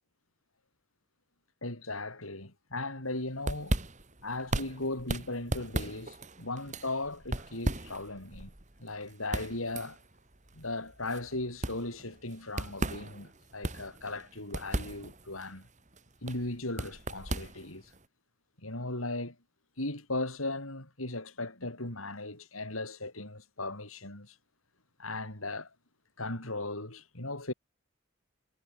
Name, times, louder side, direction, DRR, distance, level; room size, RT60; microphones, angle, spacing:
voice 1, 1.6-3.8 4.2-8.5 8.8-10.0 10.5-15.7 16.2-17.9 18.6-19.4 19.8-24.4 25.0-25.7 26.2-27.5, left 2 dB, 90° left, 7.7 m, -37 dB
sound 1, 3.1-18.0, right 1 dB, 35° right, 3.2 m, -37 dB
head